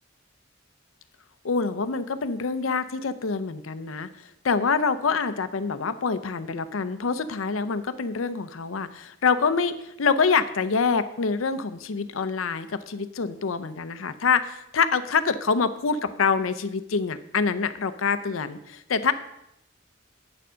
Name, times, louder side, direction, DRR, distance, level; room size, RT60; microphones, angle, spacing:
voice 1, 1.4-4.1 4.4-19.1, left 5 dB, 85° left, 12 dB, 0.6 m, -26 dB
8.7 x 6.9 x 6.2 m, 0.82 s
head